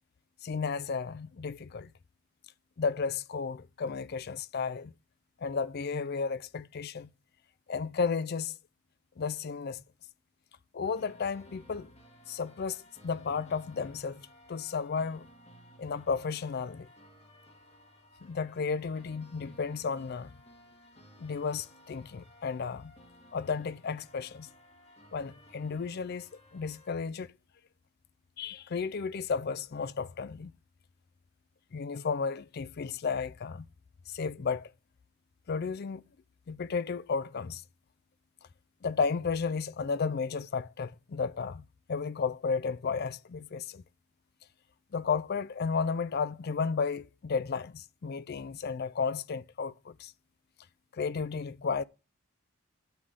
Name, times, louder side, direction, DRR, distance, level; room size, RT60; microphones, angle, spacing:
voice 1, 0.4-1.9 2.8-4.9 5.4-7.1 7.7-8.6 9.2-9.8 10.7-11.9 12.3-15.3 15.8-16.9 18.2-20.4 21.2-22.9 23.3-24.5 25.1-27.3 28.4-30.5 31.7-33.7 34.1-34.7 35.5-36.0 36.5-37.6 38.8-41.6 41.9-43.8 44.9-50.1 50.9-51.8, left 5 dB, 45° left, 0.4 m, -33 dB
sound 1, 11.0-27.0, equal, 30° left, 1.9 m, -57 dB
10.5 x 3.7 x 6.3 m
head